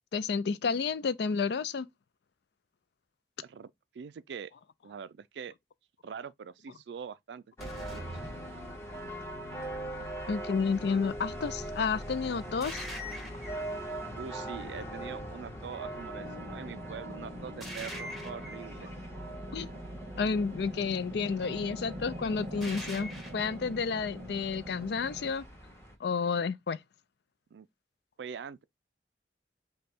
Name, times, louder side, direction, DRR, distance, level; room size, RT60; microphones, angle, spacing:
voice 1, 0.1-1.9 10.3-12.9 19.5-19.7 20.2-25.4 26.0-26.8, left 5 dB, 65° left, 0.4 m, -31 dB
voice 2, 3.4-4.5 4.8-5.5 6.0-8.1 10.0-10.1 14.2-18.9 27.5-27.7 28.2-28.6, right 6 dB, 70° right, 0.3 m, -43 dB
sound 1, 7.6-25.9, right 1 dB, 15° left, 1.3 m, -42 dB
sound 2, 7.6-9.2 12.6-13.8 17.6-18.7 22.6-23.5, equal, ahead, 1.1 m, -43 dB
sound 3, 16.1-25.3, right 1 dB, 25° right, 0.8 m, -44 dB
5.1 x 2.3 x 4.3 m
head